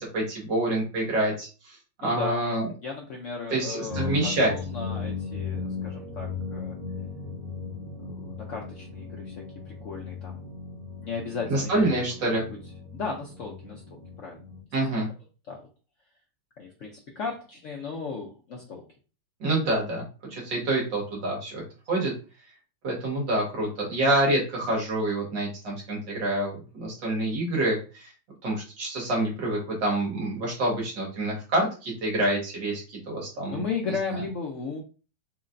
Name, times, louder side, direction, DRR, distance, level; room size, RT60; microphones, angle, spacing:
voice 1, 0.0-1.8 2.0-2.7 3.5-4.5 11.5-12.4 14.7-15.1 19.4-20.0 20.3-21.6 21.9-22.1 22.8-28.1 28.4-33.6, right 1 dB, 75° right, -2 dB, 2.2 m, -27 dB
voice 2, 2.0-2.4 2.8-6.8 8.0-10.4 11.0-11.8 12.2-12.5 12.9-14.9 15.5-15.7 16.6-18.8 33.5-34.8, left 5 dB, 65° left, 0 dB, 0.7 m, -35 dB
sound 1, 3.9-14.6, left 4 dB, 35° right, 1.0 m, -37 dB
4.3 x 2.9 x 2.5 m, 0.35 s
omnidirectional pair, 2.0 m